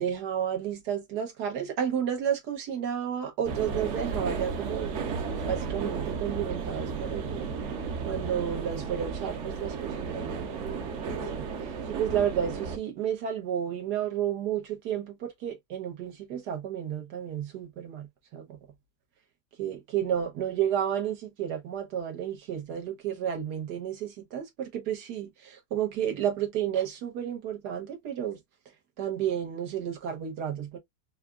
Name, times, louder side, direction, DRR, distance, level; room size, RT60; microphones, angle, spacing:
voice 1, 0.0-7.5 8.1-18.1 18.3-18.4 19.6-28.4 29.0-30.8, right 9 dB, 85° right, 1.6 m, -32 dB
sound 1, 3.5-12.8, right 5 dB, 60° right, 0.9 m, -34 dB
4.9 x 2.3 x 2.3 m
omnidirectional pair, 1.7 m